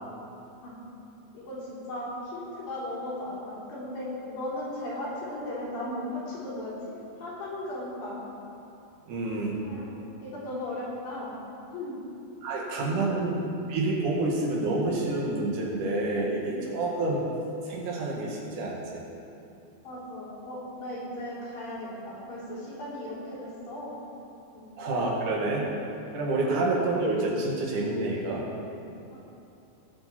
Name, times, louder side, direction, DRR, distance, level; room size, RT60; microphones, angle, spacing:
voice 1, 1.3-8.2 9.6-9.9 10.2-11.4 11.7-12.0 13.0-13.2 19.8-24.0 24.5-24.7 26.4-26.5 29.1-29.2, left 1 dB, 65° left, -8 dB, 4.9 m, -37 dB
voice 2, 9.1-9.6 12.4-17.2 17.7-19.0 24.8-25.7 26.1-28.4, right 2 dB, 60° right, -3 dB, 3.2 m, -28 dB
19.5 x 8.3 x 4.4 m, 2.8 s
omnidirectional pair, 4.4 m